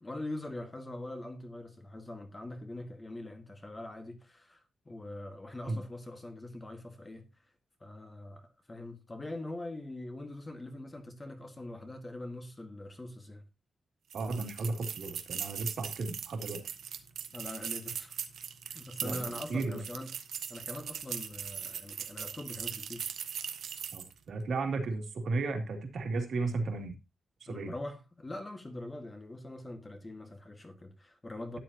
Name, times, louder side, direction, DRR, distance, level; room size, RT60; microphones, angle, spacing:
voice 1, 0.0-7.3 7.8-13.4 17.3-18.2 18.7-23.1 27.5-31.6, left 1 dB, 15° left, 1.7 m, -43 dB
voice 2, 14.1-16.6 19.0-19.8 23.9-26.9 27.4-27.7, right 3 dB, 60° right, 2.6 m, -34 dB
sound 1, 14.1-24.2, right 8 dB, 85° right, 1.3 m, -40 dB
13.0 x 9.8 x 2.9 m
wide cardioid pair, 170°, 0 cm